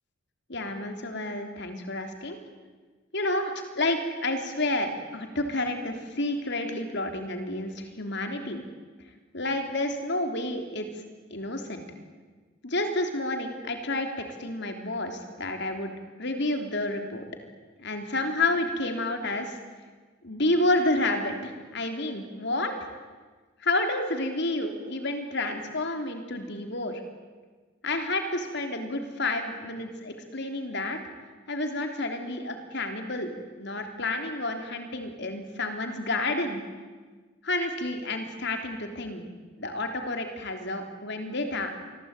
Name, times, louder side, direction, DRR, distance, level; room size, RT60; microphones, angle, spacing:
voice 1, 0.5-2.4 3.1-8.6 9.3-10.9 11.3-11.8 12.6-15.9 16.2-17.2 17.8-19.6 20.2-22.7 23.6-27.0 27.8-31.0 31.5-33.3 33.6-36.6 37.4-39.2 39.6-41.7, left 2 dB, 55° left, 5 dB, 3.6 m, -30 dB
27.5 x 21.5 x 9.1 m, 1.4 s
head